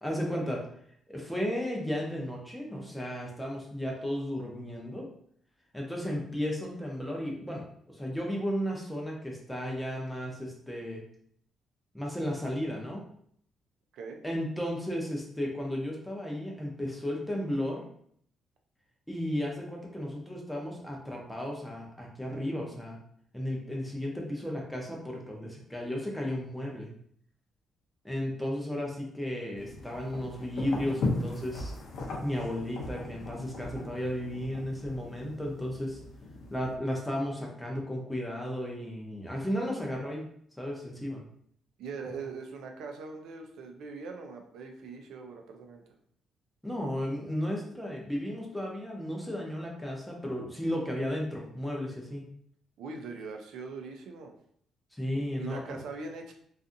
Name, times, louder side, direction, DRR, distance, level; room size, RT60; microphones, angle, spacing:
voice 1, 0.0-0.6 1.1-5.1 5.7-11.0 11.9-13.0 14.2-17.8 19.1-23.0 23.3-26.9 28.0-31.7 32.2-36.0 36.5-40.2 40.6-41.2 46.6-52.2 55.0-55.8, equal, 5° left, -1 dB, 0.6 m, -34 dB
sound 1, 29.6-36.7, left 2 dB, 65° left, 0.5 m, -38 dB
voice 2, 41.8-45.8 52.8-54.3 55.1-56.3, right 4 dB, 80° right, 4 dB, 0.4 m, -41 dB
2.6 x 2.4 x 2.5 m, 0.65 s
cardioid pair, 140°, 0 cm